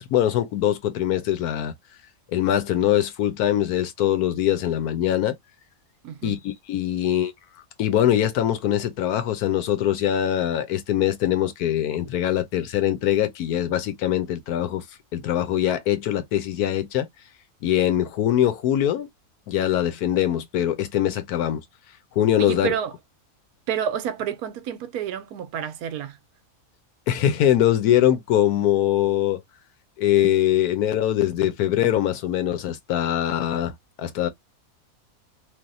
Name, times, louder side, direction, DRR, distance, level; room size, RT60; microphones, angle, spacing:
voice 1, 0.0-1.7 2.3-5.4 6.2-7.3 7.8-14.8 15.1-17.1 17.6-19.1 19.5-21.6 22.2-22.7 27.1-29.4 30.0-34.3, left 11 dB, 80° left, 1.2 m, -22 dB
voice 2, 6.0-6.4 22.4-22.9 23.7-26.2, right 9 dB, 80° right, 1.1 m, -29 dB
3.4 x 2.6 x 2.5 m
omnidirectional pair, 1.6 m